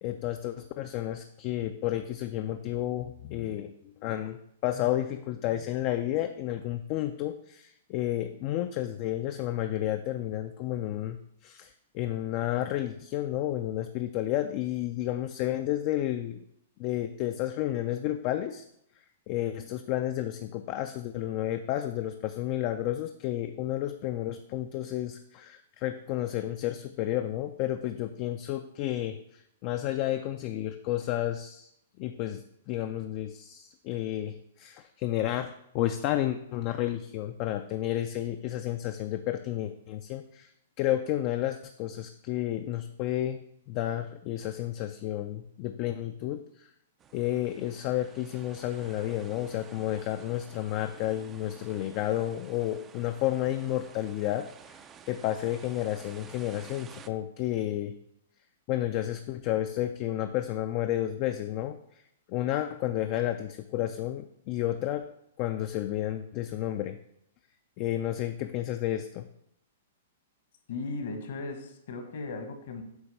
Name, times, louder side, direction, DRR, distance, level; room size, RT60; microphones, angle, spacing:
voice 1, 0.0-11.2 11.4-16.4 16.8-18.7 19.3-31.7 32.0-40.5 40.8-43.4 43.7-46.7 47.1-54.8 55.1-58.0 58.7-61.8 62.3-65.0 65.4-67.0 67.8-69.3, left 13 dB, 40° left, 7 dB, 0.4 m, -31 dB
sound 1, 47.0-57.1, right 7 dB, 20° right, 0.4 m, -52 dB
voice 2, 70.7-72.8, left 3 dB, 65° left, 5 dB, 1.4 m, -37 dB
8.0 x 3.0 x 5.5 m, 0.75 s
hypercardioid pair, 135°, 0 cm